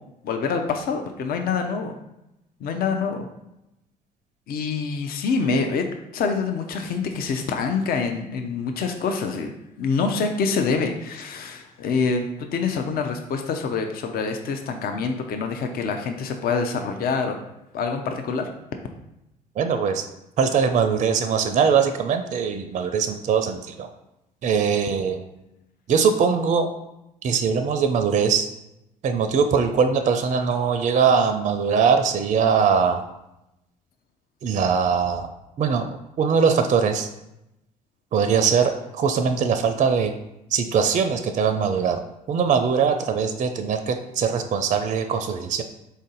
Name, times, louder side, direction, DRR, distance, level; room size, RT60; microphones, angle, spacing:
voice 1, 0.2-1.9 2.6-3.3 4.5-5.8 6.1-9.5 9.8-17.4 17.7-18.5, left 5 dB, 50° left, 5 dB, 0.5 m, -26 dB
voice 2, 19.6-20.0 20.4-23.9 24.4-25.2 25.9-26.7 27.2-28.5 29.0-33.0 34.4-35.3 35.6-37.1 38.1-40.1 40.5-42.0 42.3-45.6, right 6 dB, 40° right, 8 dB, 0.4 m, -21 dB
4.1 x 2.6 x 3.8 m, 0.88 s
hypercardioid pair, 55°, 20 cm